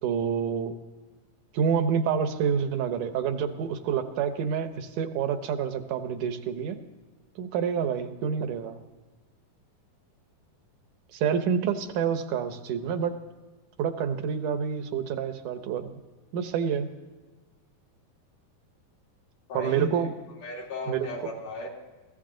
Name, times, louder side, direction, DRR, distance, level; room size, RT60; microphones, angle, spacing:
voice 1, 0.0-0.7 1.5-6.8 7.4-8.8 11.1-13.2 13.8-15.9 16.3-16.9 19.5-20.1 20.9-21.1, right 7 dB, 75° right, 9 dB, 2.4 m, -28 dB
voice 2, 19.5-20.1 20.4-21.7, left 1 dB, 65° left, -1 dB, 4.1 m, -35 dB
22.5 x 16.0 x 3.9 m, 1.3 s
omnidirectional pair, 3.9 m